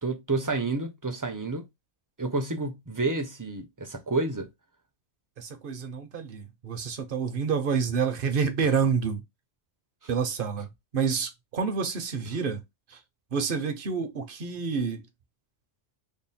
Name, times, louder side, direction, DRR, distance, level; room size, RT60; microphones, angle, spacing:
voice 1, 0.0-1.7 2.2-4.5, right 3 dB, 25° right, 0.5 m, -29 dB
voice 2, 5.4-9.2 10.1-12.6 12.9-13.0 13.3-15.0, right 6 dB, 55° right, 0.8 m, -28 dB
3.5 x 2.1 x 4.1 m
omnidirectional pair, 1.2 m